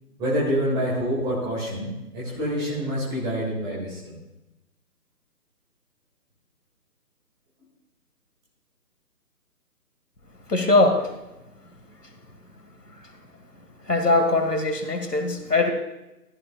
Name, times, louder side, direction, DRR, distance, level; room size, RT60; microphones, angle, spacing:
voice 1, 0.2-4.1, equal, 10° right, -5 dB, 1.9 m, -27 dB
voice 2, 10.5-11.1 13.9-15.7, left 2 dB, 85° left, 6 dB, 1.9 m, -21 dB
14.5 x 13.0 x 2.3 m, 0.98 s
figure-of-eight pair, 145°, 46 cm